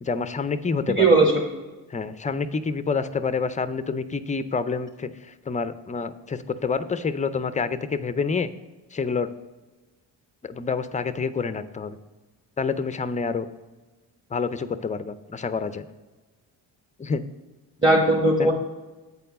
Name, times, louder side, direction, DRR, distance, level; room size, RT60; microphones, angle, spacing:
voice 1, 0.0-1.1 1.9-8.5 8.9-9.3 10.4-12.0 12.6-13.5 14.3-15.8 17.0-17.2 18.4-18.5, left 5 dB, 15° left, 12 dB, 0.4 m, -28 dB
voice 2, 1.0-1.6 17.8-18.5, right 2 dB, 10° right, -1 dB, 1.1 m, -18 dB
8.3 x 4.4 x 5.4 m, 1.2 s
cardioid pair, 70°, 47 cm